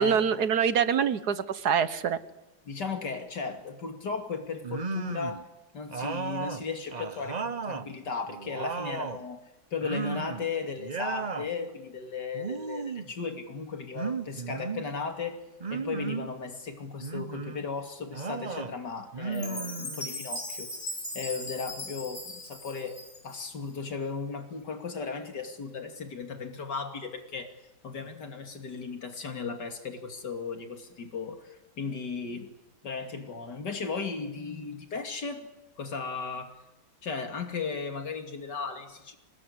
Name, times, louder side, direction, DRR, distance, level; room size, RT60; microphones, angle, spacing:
voice 1, 0.0-2.2, right 7 dB, 65° right, 14 dB, 1.6 m, -25 dB
voice 2, 2.7-5.4 5.7-9.4 9.7-15.4 15.7-27.5 27.8-32.5 32.8-35.4 35.8-36.5 37.0-39.2, left 5 dB, 75° left, 5 dB, 3.2 m, -36 dB
sound 1, 4.6-5.4 5.9-7.9 8.3-9.2 9.8-10.5 10.8-11.5 12.3-13.1 13.9-14.9 15.6-16.3 17.0-17.6 18.1-18.7 19.1-20.2, right 4 dB, 35° right, 0.8 m, -35 dB
Chime, 19.3-23.5, left 1 dB, 30° left, 4.0 m, -39 dB
25.5 x 19.5 x 9.7 m, 0.96 s
omnidirectional pair, 1.8 m